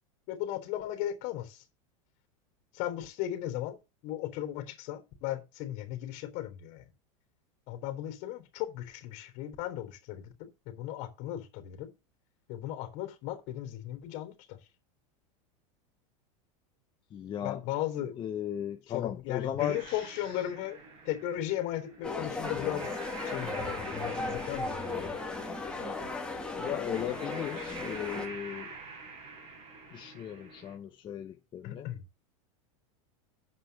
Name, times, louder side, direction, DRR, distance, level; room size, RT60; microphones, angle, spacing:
voice 1, 0.3-1.6 2.7-3.8 4.0-6.9 7.7-11.9 12.5-14.6 17.4-18.1 18.9-20.8 21.1-22.9 23.2-25.1 31.6-32.0, left 12 dB, 50° left, 3.5 m, -36 dB
voice 2, 17.1-17.6 18.2-20.3 26.6-28.7 29.9-31.9, left 10 dB, 30° left, 1.0 m, -36 dB
sound 1, 19.6-30.8, right 3 dB, 35° right, 4.4 m, -47 dB
sound 2, 22.0-28.3, left 3 dB, 5° left, 2.7 m, -36 dB
7.9 x 5.7 x 7.0 m
supercardioid pair, 140°, 17 cm